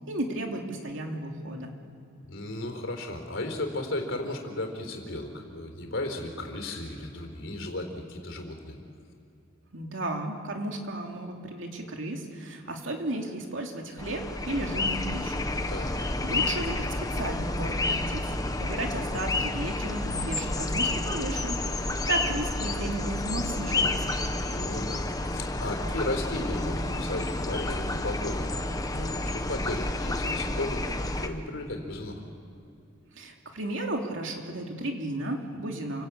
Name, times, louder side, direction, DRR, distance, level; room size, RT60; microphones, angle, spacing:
voice 1, 0.1-1.7 9.7-15.5 16.2-16.9 17.2-18.2 18.6-24.2 33.1-36.1, right 1 dB, 65° right, 2 dB, 3.0 m, -34 dB
voice 2, 2.3-8.8 15.7-15.9 24.5-32.2, left 1 dB, 70° left, 4 dB, 4.0 m, -35 dB
sound 1, 14.0-31.3, left 2 dB, 20° left, 1.2 m, -30 dB
28.5 x 17.5 x 8.7 m, 2.6 s
head